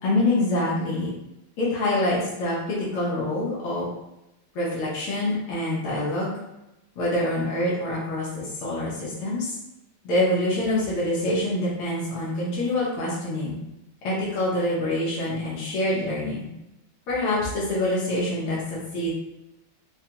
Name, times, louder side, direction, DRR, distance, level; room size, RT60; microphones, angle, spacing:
voice 1, 0.0-1.1 1.6-3.9 4.6-6.3 7.0-9.6 10.0-13.6 14.0-16.5 17.1-19.1, left 1 dB, 90° left, -7 dB, 2.0 m, -26 dB
5.4 x 2.3 x 2.9 m, 0.92 s
omnidirectional pair, 2.3 m